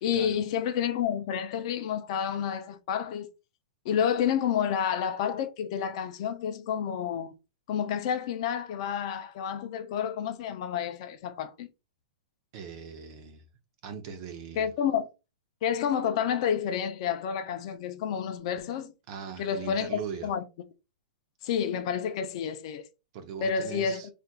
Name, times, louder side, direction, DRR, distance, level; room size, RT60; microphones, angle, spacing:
voice 1, 0.0-3.3 3.8-7.3 7.7-11.7 14.6-15.1 15.6-18.9 19.4-20.4 21.4-22.9 23.4-24.0, left 8 dB, 40° left, 0.4 m, -29 dB
voice 2, 12.5-13.4 13.8-14.7 19.1-20.3 23.1-24.1, right 7 dB, 35° right, 0.6 m, -40 dB
4.1 x 2.5 x 2.2 m
hypercardioid pair, 165°, 5 cm